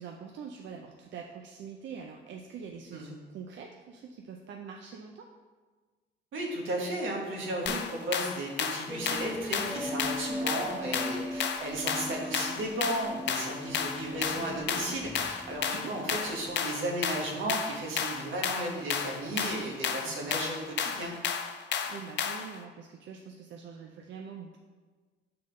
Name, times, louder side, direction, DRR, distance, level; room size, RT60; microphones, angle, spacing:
voice 1, 0.0-5.3 10.4-11.3 15.7-16.0 20.0-20.3 21.6-24.6, right 6 dB, 65° right, 2 dB, 0.5 m, -45 dB
voice 2, 6.3-21.1, right 1 dB, 85° right, -1 dB, 1.3 m, -34 dB
sound 1, 7.7-22.6, left 7 dB, 65° left, 0.5 m, -33 dB
sound 2, 8.9-16.6, left 1 dB, ahead, 0.3 m, -39 dB
5.7 x 3.9 x 5.1 m, 1.4 s
cardioid pair, 90°, 20 cm